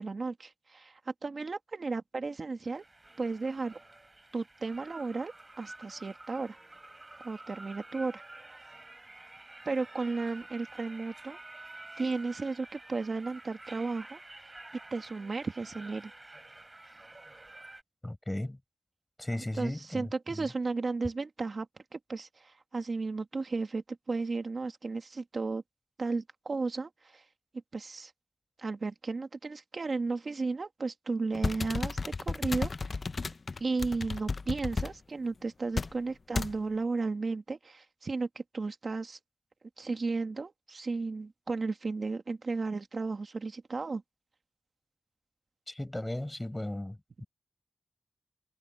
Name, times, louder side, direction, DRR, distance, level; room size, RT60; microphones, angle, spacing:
voice 1, 0.0-2.8 3.2-3.8 4.3-5.3 5.6-6.6 7.2-8.2 9.6-11.4 12.0-14.2 14.9-16.1 19.6-21.7 21.9-25.6 26.0-27.2 27.7-28.1 28.6-33.0 33.6-39.2 39.8-44.0, right 3 dB, 55° right, 1.6 m, -34 dB
sound 1, 2.6-17.8, right 2 dB, 25° right, 4.6 m, -50 dB
voice 2, 18.0-18.6 19.2-20.5 45.7-47.3, left 1 dB, 15° left, 6.1 m, -36 dB
sound 2, 31.3-34.9 35.8-35.9 36.4-36.6, left 4 dB, 50° left, 0.6 m, -33 dB
wide cardioid pair, 90°, 0 cm